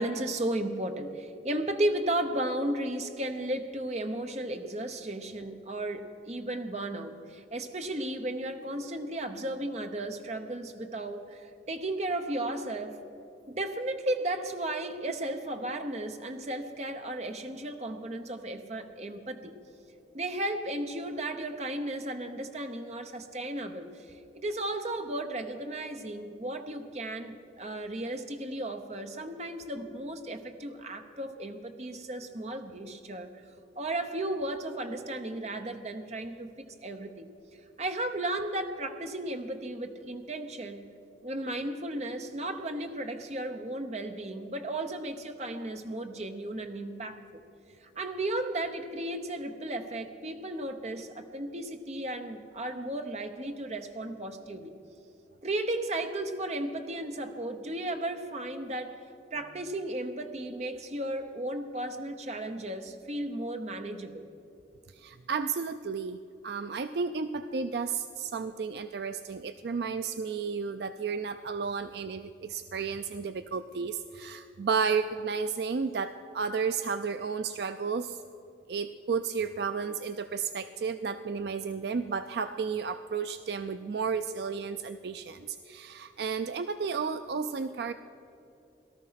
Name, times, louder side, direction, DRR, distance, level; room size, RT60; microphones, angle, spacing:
voice 1, 0.0-13.0 13.5-19.6 20.1-24.1 24.3-33.4 33.8-37.3 37.8-40.9 41.2-47.4 47.8-54.7 55.4-59.0 59.3-64.3, right 1 dB, 40° right, 6 dB, 0.9 m, -34 dB
voice 2, 65.0-66.2 66.4-78.2 78.7-87.9, right 5 dB, 65° right, 10 dB, 0.4 m, -32 dB
18.0 x 13.0 x 5.7 m, 2.8 s
head